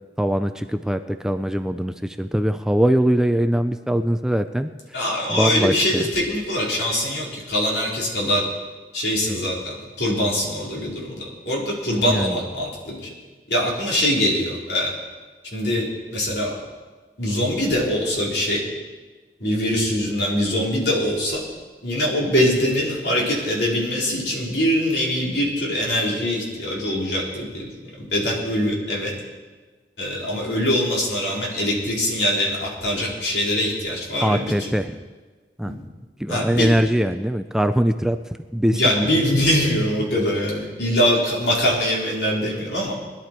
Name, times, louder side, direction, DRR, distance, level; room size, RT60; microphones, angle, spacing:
voice 1, 0.2-6.1 12.1-12.4 34.2-35.0 35.6-35.7 36.2-38.2 38.5-38.9, equal, 5° right, 8 dB, 0.4 m, -22 dB
voice 2, 4.9-8.4 8.9-13.0 13.5-14.9 15.5-16.6 17.2-18.6 19.4-21.4 21.8-27.7 28.0-29.1 30.0-34.7 35.6-35.8 36.3-36.7 38.7-42.9, equal, 70° left, -3 dB, 3.9 m, -23 dB
20.5 x 11.5 x 4.5 m, 1.3 s
head